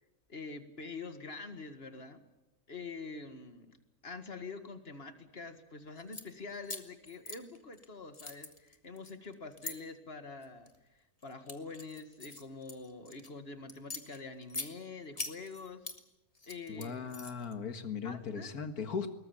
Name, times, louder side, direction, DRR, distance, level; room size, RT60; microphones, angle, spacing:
voice 1, 0.3-2.2 2.7-3.8 4.0-10.7 11.2-15.8 16.5-17.1 18.0-18.5, left 4 dB, 45° left, 9 dB, 2.1 m, -45 dB
sound 1, 6.0-6.3 6.6-7.9 8.1-9.7 10.4-10.8 11.2-13.3 13.7-14.7 15.2-16.0 16.3-17.5, left 2 dB, 25° left, 1.7 m, -43 dB
voice 2, 16.7-19.1, left 6 dB, 85° left, 9 dB, 2.2 m, -38 dB
22.0 x 19.5 x 8.8 m, 0.98 s
omnidirectional pair, 1.5 m